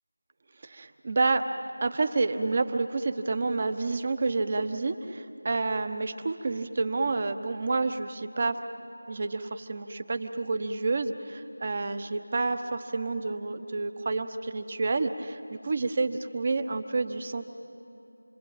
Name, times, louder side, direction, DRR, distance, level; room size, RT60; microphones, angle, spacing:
voice 1, 0.6-1.5 1.8-8.6 9.1-17.4, right 3 dB, 35° right, 9 dB, 1.1 m, -29 dB
28.5 x 22.0 x 8.8 m, 2.7 s
figure-of-eight pair, 170°, 0 cm